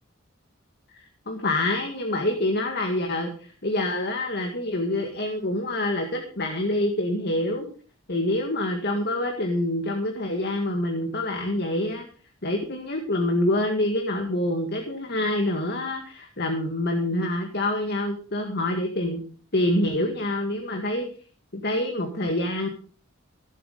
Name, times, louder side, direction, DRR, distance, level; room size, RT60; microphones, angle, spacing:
voice 1, 1.3-7.7 8.1-12.1 12.4-19.2 19.5-21.1 21.5-22.7, left 1 dB, 50° left, 4 dB, 1.8 m, -26 dB
15.5 x 8.6 x 5.1 m, 0.41 s
head